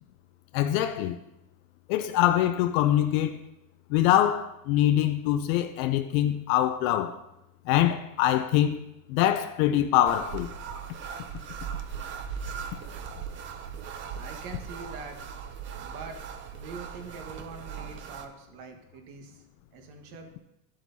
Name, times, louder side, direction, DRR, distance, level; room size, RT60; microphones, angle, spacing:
voice 1, 0.5-1.2 1.9-3.4 3.9-7.2 7.7-8.8 9.1-10.5, left 12 dB, 60° left, 0.6 m, -24 dB
sound 1, 10.1-18.3, right 7 dB, 25° right, 0.5 m, -39 dB
voice 2, 14.1-15.3 15.8-16.2 16.5-19.4 19.7-20.3, right 4 dB, 60° right, 1.5 m, -43 dB
11.5 x 7.6 x 2.7 m
supercardioid pair, 135°, 49 cm